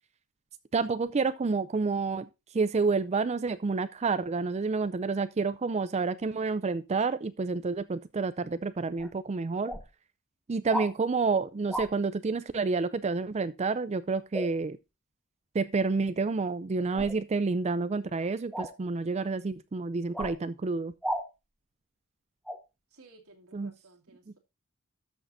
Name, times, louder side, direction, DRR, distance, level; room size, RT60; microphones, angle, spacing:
voice 1, 0.7-2.3 2.5-9.8 10.5-14.8 15.5-20.9 23.5-23.7, right 4 dB, 30° right, 0.4 m, -29 dB
sound 1, 9.0-9.1 9.6-9.8 10.7-10.9 11.7-11.9 14.3-14.5 16.9-17.2 18.5-18.7 20.1-20.4 21.0-21.2 22.5-22.6, equal, ahead, 1.2 m, -33 dB
voice 2, 22.9-24.4, right 3 dB, 85° right, 2.4 m, -56 dB
13.0 x 6.5 x 2.6 m
head